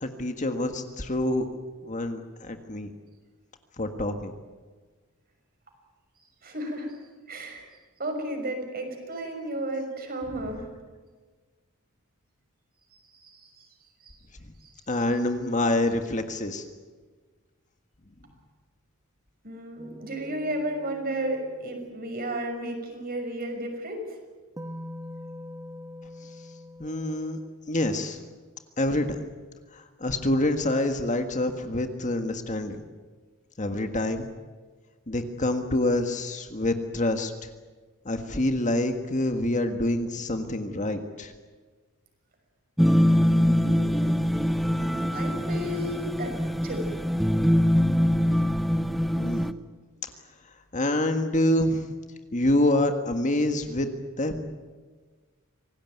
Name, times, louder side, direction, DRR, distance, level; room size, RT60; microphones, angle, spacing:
voice 1, 0.0-1.4 1.8-2.9 3.8-4.3 14.9-16.6 26.8-27.4 27.7-28.2 28.8-29.2 29.7-32.8 33.6-34.3 35.1-37.5 38.0-41.3 49.2-49.4 50.0-50.1 50.7-51.9 52.3-53.9 54.2-54.4, left 1 dB, 35° left, 7 dB, 1.7 m, -26 dB
voice 2, 6.4-6.9 7.3-7.6 8.0-10.7 13.1-13.7 14.0-14.2 14.6-14.7 19.4-24.0 43.2-43.9 44.7-46.4 46.6-46.9, right 1 dB, 45° right, 4 dB, 6.0 m, -33 dB
sound 1, 19.8-22.1 24.6-27.5, left 1 dB, 15° right, 1.1 m, -43 dB
sound 2, 42.8-49.5, equal, ahead, 0.8 m, -23 dB
26.5 x 18.5 x 9.3 m, 1.4 s
head